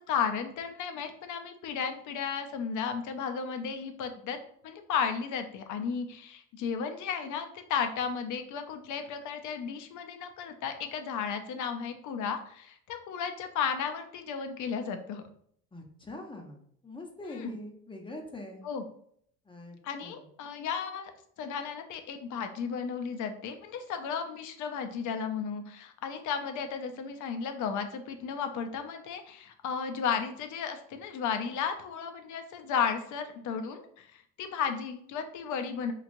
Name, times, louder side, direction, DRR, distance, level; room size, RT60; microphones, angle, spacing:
voice 1, 0.0-4.4 4.6-15.2 17.3-17.5 18.6-18.8 19.8-21.1 21.4-35.9, left 6 dB, 60° left, 7 dB, 0.5 m, -34 dB
voice 2, 15.7-18.6 19.5-20.2, left 2 dB, 15° left, 3 dB, 0.6 m, -44 dB
3.1 x 2.4 x 2.5 m, 0.65 s
cardioid pair, 95°, 33 cm